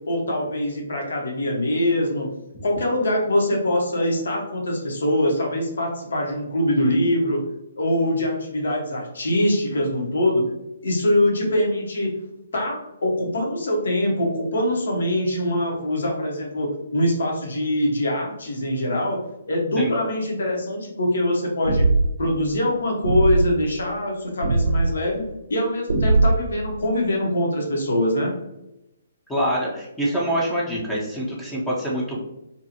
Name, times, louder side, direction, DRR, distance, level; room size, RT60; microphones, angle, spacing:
voice 1, 0.0-2.3 2.6-7.4 7.8-10.5 10.8-12.1 12.5-19.2 19.5-21.9 22.2-28.3, left 1 dB, 70° left, 0 dB, 0.9 m, -23 dB
sound 1, 21.7-22.2 23.0-23.5 24.4-24.9 25.9-26.6, right 3 dB, 65° right, 0.5 m, -19 dB
voice 2, 29.3-32.2, equal, 10° left, -5 dB, 0.6 m, -25 dB
2.7 x 2.4 x 2.7 m, 0.92 s
figure-of-eight pair, 135°, 0 cm